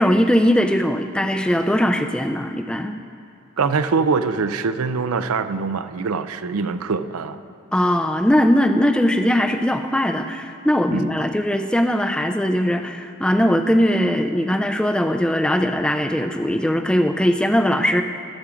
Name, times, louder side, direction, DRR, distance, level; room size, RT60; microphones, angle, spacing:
voice 1, 0.0-3.0 7.7-18.0, equal, 5° left, 6 dB, 0.4 m, -20 dB
voice 2, 3.6-7.4 10.9-11.1, right 4 dB, 85° right, 12 dB, 0.5 m, -23 dB
16.5 x 7.1 x 5.0 m, 2.4 s
head